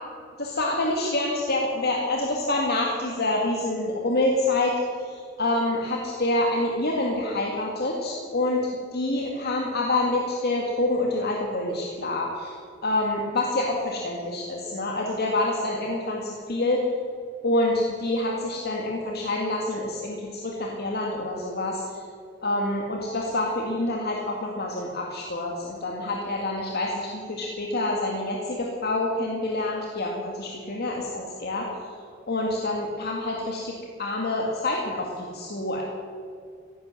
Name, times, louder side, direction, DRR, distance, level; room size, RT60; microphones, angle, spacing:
voice 1, 0.4-4.7 5.0-12.5 12.8-16.9 17.4-22.0 22.4-31.7 32.3-33.7 34.0-35.8, left 2 dB, 55° left, -1 dB, 1.9 m, -27 dB
15.5 x 11.0 x 7.7 m, 2.4 s
head